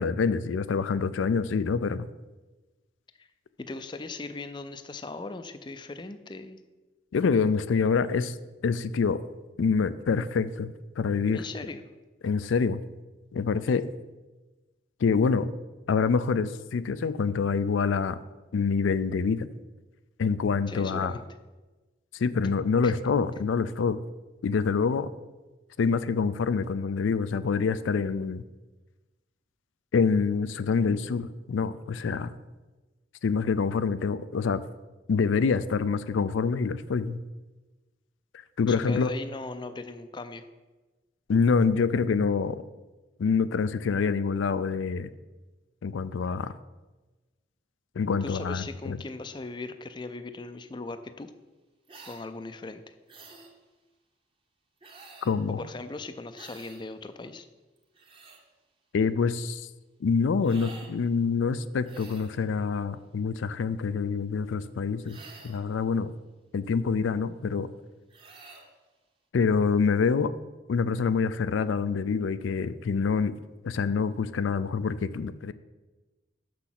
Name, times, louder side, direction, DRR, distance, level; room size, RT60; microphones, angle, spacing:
voice 1, 0.0-2.1 7.1-8.4 8.6-9.2 9.6-11.4 12.2-12.8 13.3-13.8 15.0-15.5 15.9-18.2 18.5-19.5 20.2-21.1 22.1-24.0 24.4-25.1 25.8-28.4 29.9-32.3 33.2-34.6 35.1-37.2 38.6-39.1 41.3-42.6 43.2-45.1 45.8-46.5 48.0-49.0 55.2-55.6 58.9-59.7 60.0-65.2 65.4-66.1 66.5-67.7 69.3-70.3 70.7-73.3 73.6-75.5, left 5 dB, 90° left, 13 dB, 0.4 m, -26 dB
voice 2, 3.6-6.6 11.3-11.8 20.7-21.2 22.8-22.9 38.7-40.4 48.2-51.3 52.1-52.9 55.5-57.5, left 3 dB, 25° left, 10 dB, 0.4 m, -38 dB
sound 1, 51.9-52.2 53.1-53.5 54.8-55.4 56.3-56.8 57.8-58.4 60.4-60.9 61.8-62.4 65.0-65.7 68.1-68.7, right 3 dB, 30° right, 1.0 m, -49 dB
6.7 x 6.1 x 5.9 m, 1.2 s
head